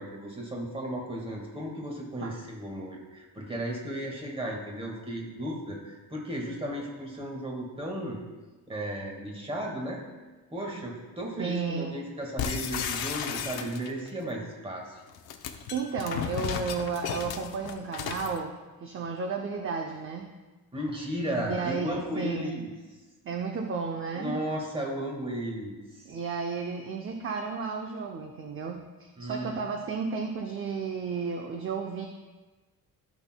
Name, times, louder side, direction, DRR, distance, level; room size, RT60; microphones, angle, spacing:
voice 1, 0.0-8.2 8.7-10.0 10.5-15.0 20.7-22.7 24.1-26.2 29.2-29.8, equal, 15° right, 0 dB, 1.6 m, -35 dB
voice 2, 11.4-12.0 15.7-20.3 21.5-22.6 23.2-24.4 26.0-32.1, right 5 dB, 35° right, 3 dB, 0.6 m, -33 dB
sound 1, 12.4-14.1 15.1-18.4, left 8 dB, 85° left, 0.7 m, -34 dB
14.5 x 6.2 x 2.2 m, 1.2 s
cardioid pair, 140°, 36 cm